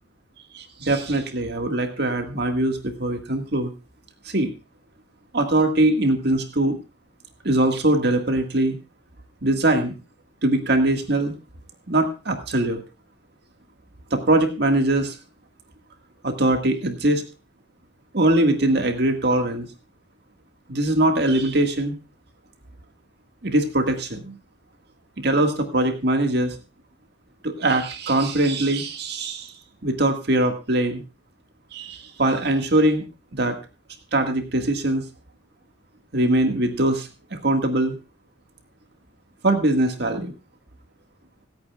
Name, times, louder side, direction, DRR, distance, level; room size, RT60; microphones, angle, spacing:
voice 1, 0.5-3.7 4.3-4.5 5.3-6.8 7.4-8.8 9.4-9.9 10.4-11.3 11.9-12.8 14.1-15.2 16.2-17.2 18.1-19.7 20.7-22.0 23.4-24.3 25.2-26.6 27.4-29.5 29.8-31.0 31.7-33.0 33.3-33.6 34.1-35.1 36.1-38.0 39.4-40.3, right 1 dB, 60° right, 5 dB, 1.8 m, -22 dB
26.5 x 8.9 x 2.4 m, 0.30 s
head